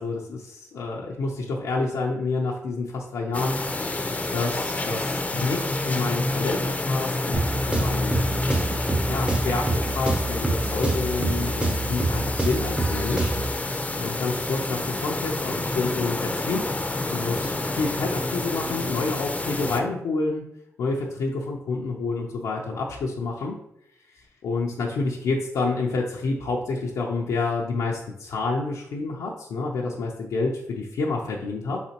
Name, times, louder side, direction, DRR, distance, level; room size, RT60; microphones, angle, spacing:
voice 1, 0.0-7.4 7.7-8.4 9.1-13.3 14.0-16.6 17.1-20.4 20.8-23.6 24.1-31.8, left 3 dB, 90° left, -3 dB, 0.5 m, -28 dB
sound 1, 3.3-19.8, left 2 dB, 25° left, 0.5 m, -28 dB
sound 2, 7.3-13.6, right 2 dB, 20° right, 0.7 m, -27 dB
4.2 x 4.0 x 2.8 m, 0.77 s
cardioid pair, 55°, 6 cm